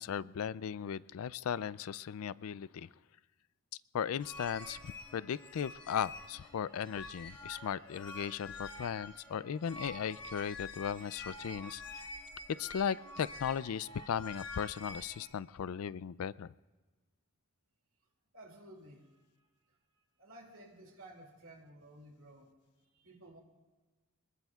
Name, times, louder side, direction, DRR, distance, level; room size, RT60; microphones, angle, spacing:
voice 1, 0.0-2.9 3.9-11.8 12.6-16.5, left 8 dB, 80° left, 19 dB, 0.4 m, -37 dB
sound 1, 4.2-15.3, left 2 dB, 20° left, 1.6 m, -47 dB
voice 2, 18.3-19.2 20.2-22.5 23.0-23.4, right 1 dB, 65° right, 2 dB, 2.5 m, -54 dB
23.5 x 21.0 x 2.4 m, 1.3 s
head